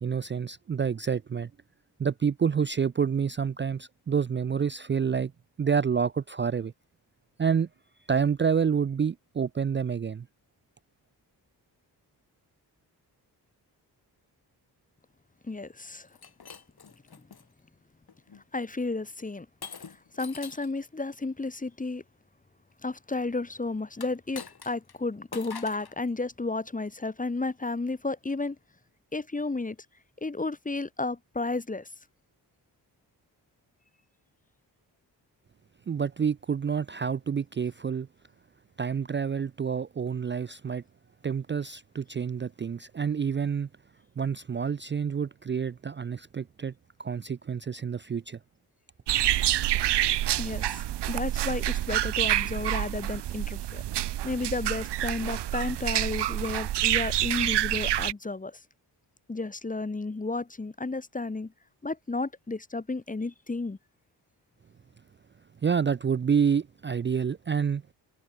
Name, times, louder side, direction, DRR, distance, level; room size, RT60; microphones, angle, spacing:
voice 1, 0.0-1.5 2.0-5.3 5.6-6.7 7.4-7.7 8.1-10.3 35.9-38.1 38.8-40.8 41.2-43.7 44.2-46.7 47.0-48.4 65.6-67.8, right 6 dB, 30° right, 0.4 m, -28 dB
voice 2, 15.4-16.1 17.1-17.2 18.5-19.5 20.1-22.0 22.8-28.6 29.1-29.8 30.2-31.9 50.0-53.8 54.2-58.6 59.3-61.5 61.8-63.8, left 3 dB, 20° left, 1.0 m, -32 dB
Shatter, 16.1-17.4 18.1-18.4 19.6-20.8 23.9-25.0 25.3-26.0, left 6 dB, 65° left, 8.0 m, -44 dB
sound 1, 49.1-58.1, right 13 dB, 80° right, 0.7 m, -27 dB
cardioid pair, 60°, 41 cm